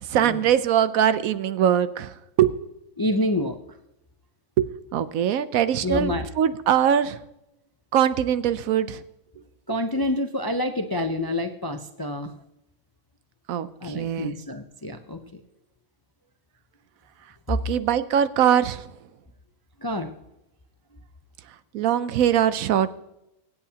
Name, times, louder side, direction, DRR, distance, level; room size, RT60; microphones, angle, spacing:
voice 1, 0.0-2.5 4.6-7.2 7.9-9.0 13.5-14.4 17.5-18.9 21.7-23.0, right 9 dB, 85° right, 14 dB, 1.1 m, -22 dB
voice 2, 3.0-3.6 5.8-6.3 9.7-12.3 13.8-15.4 19.8-20.1, left 1 dB, 30° left, 7 dB, 0.4 m, -27 dB
24.5 x 8.4 x 2.9 m, 0.88 s
omnidirectional pair, 1.4 m